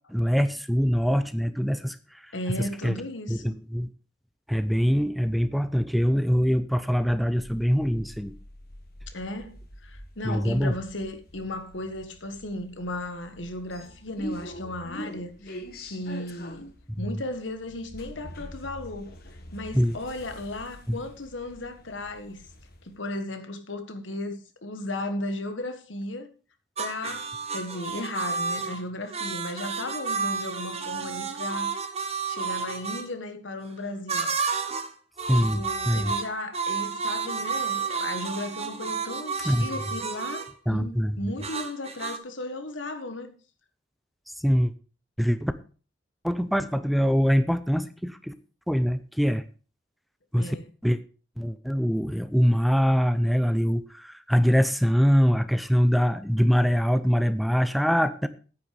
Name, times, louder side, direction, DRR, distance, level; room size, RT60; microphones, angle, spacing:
voice 1, 0.1-3.0 3.3-3.9 4.5-8.3 10.2-10.7 16.9-17.1 19.7-20.0 20.9-21.0 35.3-36.1 39.4-39.7 40.7-41.3 44.4-44.7 45.2-45.5 46.2-48.3 48.7-49.4 50.3-50.6 50.8-51.0 51.4-58.3, equal, ahead, 0.6 m, -24 dB
voice 2, 2.3-3.6 9.1-16.7 17.0-19.1 19.5-22.4 22.8-26.3 26.8-31.8 32.3-34.3 35.4-43.3 50.4-50.7, left 1 dB, 85° left, 1.6 m, -35 dB
sound 1, 7.4-23.0, equal, 55° left, 1.8 m, -44 dB
sound 2, 26.8-33.1 34.1-34.9 35.2-40.5 41.4-42.2, right 5 dB, 35° right, 1.2 m, -31 dB
9.6 x 9.0 x 5.2 m
head